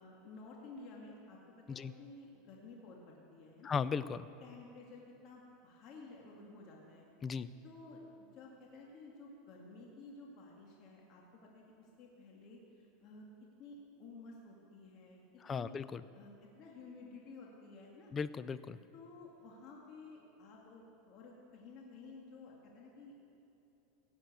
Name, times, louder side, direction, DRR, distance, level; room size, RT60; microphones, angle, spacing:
voice 1, 0.0-1.4 1.7-3.8 4.4-7.1 7.4-15.8 16.1-18.1 18.9-23.2, left 3 dB, 45° left, -2 dB, 2.1 m, -53 dB
voice 2, 3.7-4.3 7.2-7.5 15.5-16.0 18.1-18.8, left 6 dB, 25° left, 15 dB, 0.5 m, -36 dB
17.0 x 7.7 x 8.3 m, 2.9 s
supercardioid pair, 135°, 0 cm